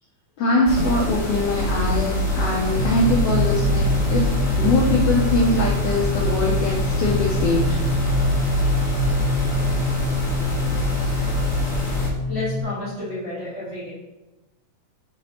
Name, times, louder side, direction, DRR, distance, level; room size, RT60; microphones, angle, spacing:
voice 1, 0.4-7.8, left 2 dB, 80° left, -2 dB, 1.4 m, -22 dB
sound 1, 0.6-12.1, equal, 65° left, 0.7 m, -24 dB
sound 2, 2.8-12.6, left 2 dB, 75° right, 1.5 m, -27 dB
voice 2, 12.3-13.9, left 1 dB, 40° right, -8 dB, 1.0 m, -30 dB
5.6 x 5.4 x 3.4 m, 1.1 s
omnidirectional pair, 3.5 m